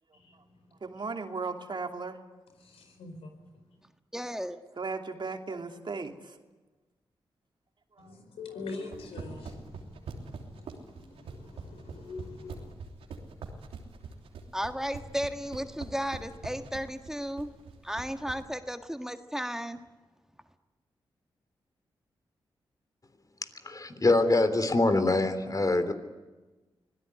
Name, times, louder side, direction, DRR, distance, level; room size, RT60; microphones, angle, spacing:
voice 1, 0.8-2.2 4.8-6.4 8.0-8.1, right 4 dB, 55° right, 2.8 m, -36 dB
voice 2, 2.6-3.6 8.0-12.7, left 3 dB, 85° left, 4.6 m, -44 dB
voice 3, 4.1-4.6 14.5-17.5 17.8-19.8, equal, 5° right, 1.7 m, -34 dB
sound 1, 8.8-18.4, right 5 dB, 85° right, 3.3 m, -43 dB
voice 4, 23.6-25.9, left 2 dB, 40° left, 3.5 m, -24 dB
25.0 x 17.0 x 9.8 m
supercardioid pair, 40°, 10 cm